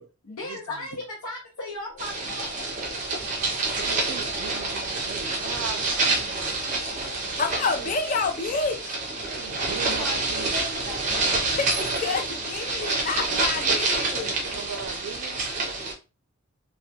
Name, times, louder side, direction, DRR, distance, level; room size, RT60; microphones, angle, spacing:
voice 1, 0.2-3.2 9.5-12.7, left 2 dB, 85° left, 0.7 m, -39 dB
sound 1, 1.7-9.1, left 4 dB, 55° left, 1.2 m, -47 dB
sound 2, 2.0-15.9, right 3 dB, 35° right, 0.5 m, -28 dB
voice 2, 3.7-7.0 7.7-7.9 9.2-10.6 13.7-15.4, right 6 dB, 90° right, 0.5 m, -39 dB
voice 3, 7.4-9.0 11.4-11.7 12.0-14.4, left 4 dB, 35° left, 0.3 m, -28 dB
2.2 x 2.2 x 2.7 m
head